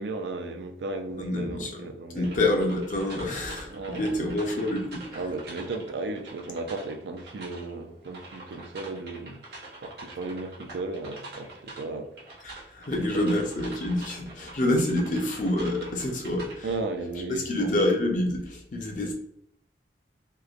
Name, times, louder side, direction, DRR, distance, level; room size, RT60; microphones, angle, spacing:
voice 1, 0.0-2.4 3.7-4.4 5.1-9.4 9.8-12.1 16.6-17.7, right 3 dB, 75° right, 0.4 m, -35 dB
voice 2, 1.1-1.8 2.1-5.2 12.4-16.7 17.3-19.1, left 1 dB, 45° left, 0.5 m, -27 dB
sound 1, 2.2-16.5, right 2 dB, 60° right, 0.8 m, -45 dB
2.9 x 2.1 x 2.4 m
head